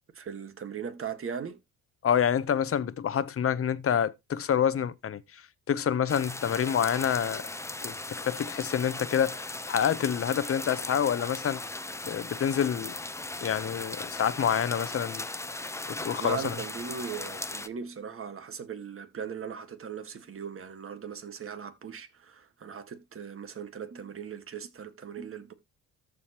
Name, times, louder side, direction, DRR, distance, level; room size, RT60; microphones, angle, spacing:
voice 1, 0.1-1.6 16.2-25.5, right 7 dB, 40° right, 1.7 m, -39 dB
voice 2, 2.0-5.4 5.7-7.4 7.8-11.6 12.0-13.0 13.4-15.3 15.9-16.6, left 8 dB, 45° left, 0.9 m, -27 dB
sound 1, 6.1-17.7, left 2 dB, 10° left, 0.7 m, -38 dB
14.0 x 5.0 x 3.0 m
cardioid pair, 95°, 32 cm